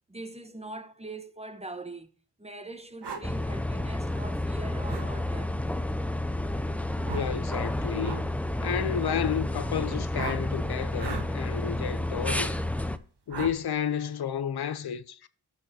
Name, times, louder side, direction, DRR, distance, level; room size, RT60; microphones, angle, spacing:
voice 1, 0.1-2.1 2.4-5.6, right 2 dB, 15° right, 1.1 m, -42 dB
sound 1, 3.0-3.2 4.9-5.1 7.0-7.3 8.0-8.2 10.1-10.4 11.0-11.3 12.2-12.4 13.3-13.6, right 5 dB, 70° right, 1.5 m, -36 dB
sound 2, 3.2-13.0, left 1 dB, 5° left, 0.6 m, -30 dB
voice 2, 6.9-8.3 8.6-12.5 13.3-15.3, left 8 dB, 60° left, 0.8 m, -31 dB
11.0 x 6.4 x 2.8 m
cardioid pair, 55°, 43 cm